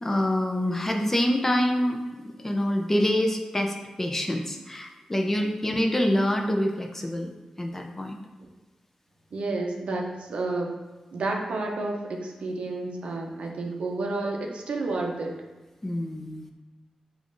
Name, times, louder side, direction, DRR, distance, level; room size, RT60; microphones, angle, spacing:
voice 1, 0.0-7.3 7.6-8.2 15.8-16.5, left 1 dB, 15° left, 3 dB, 0.4 m, -26 dB
voice 2, 9.3-10.8 11.1-15.3, right 2 dB, 75° right, 1 dB, 0.5 m, -30 dB
5.2 x 2.4 x 2.5 m, 1.2 s
wide cardioid pair, 90°, 2 cm